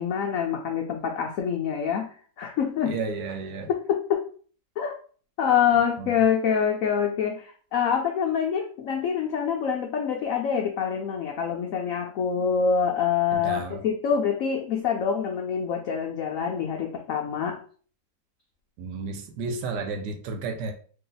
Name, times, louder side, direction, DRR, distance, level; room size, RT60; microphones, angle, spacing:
voice 1, 0.0-3.0 3.7-4.2 4.8-5.0 5.4-17.6, left 7 dB, 85° left, 2 dB, 0.7 m, -26 dB
voice 2, 2.9-3.7 6.0-6.1 13.3-13.8 18.8-20.7, right 4 dB, 70° right, 4 dB, 1.2 m, -32 dB
3.0 x 2.7 x 3.9 m, 0.43 s
omnidirectional pair, 2.0 m